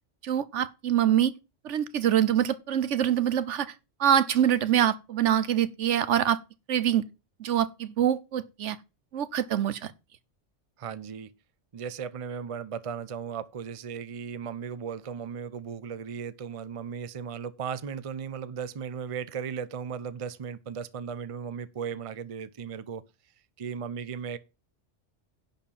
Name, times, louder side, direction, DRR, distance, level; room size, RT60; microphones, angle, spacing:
voice 1, 0.2-1.3 1.6-3.7 4.0-6.4 6.7-7.1 7.4-8.8 9.1-9.9, right 10 dB, 75° right, 1.1 m, -25 dB
voice 2, 10.8-11.3 11.7-23.0 23.6-24.4, right 7 dB, 35° right, 0.6 m, -36 dB
10.5 x 4.4 x 7.3 m
omnidirectional pair, 1.3 m